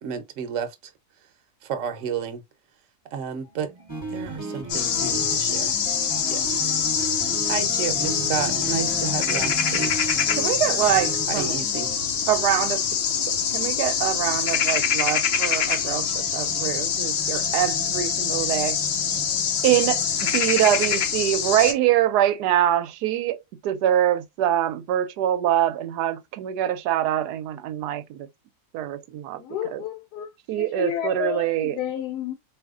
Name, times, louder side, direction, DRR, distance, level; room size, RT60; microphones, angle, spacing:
voice 1, 0.0-0.8 1.6-2.4 3.1-3.7 4.1-5.7 6.3-6.5 7.5-10.0 11.3-11.9, right 7 dB, 60° right, 1.0 m, -31 dB
sound 1, 3.4-21.3, right 3 dB, 30° right, 0.8 m, -42 dB
sound 2, 3.9-12.0, right 2 dB, 20° left, 1.1 m, -35 dB
sound 3, 4.7-21.7, left 7 dB, 65° left, 0.6 m, -24 dB
voice 2, 10.3-11.6 12.3-12.8 13.3-18.8 19.6-28.3 28.7-29.4 29.7-29.8 30.5-31.8, right 12 dB, 85° right, 1.1 m, -24 dB
voice 3, 29.4-32.3, left 11 dB, 85° left, 1.1 m, -31 dB
4.2 x 2.7 x 2.4 m
omnidirectional pair, 1.7 m